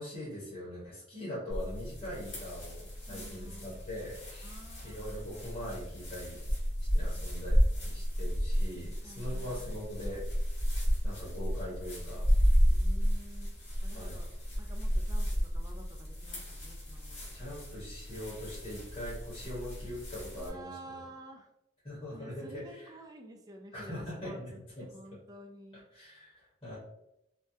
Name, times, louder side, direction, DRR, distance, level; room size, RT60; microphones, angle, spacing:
voice 1, 0.0-4.5 4.8-6.4 6.9-7.6 7.8-10.2 10.6-12.2 13.9-14.2 17.3-20.7 21.8-22.9 23.7-24.5 24.8-24.9 25.9-26.8, left 1 dB, 30° left, -9 dB, 1.3 m, -42 dB
sound 1, 1.5-20.5, equal, 85° left, 1.4 m, -32 dB
voice 2, 3.1-3.8 4.4-5.9 9.0-9.8 12.7-14.3 14.6-17.3 20.3-21.5 22.1-24.4 24.8-25.9, right 1 dB, 20° right, 3 dB, 0.3 m, -51 dB
3.3 x 2.1 x 2.7 m, 0.83 s
head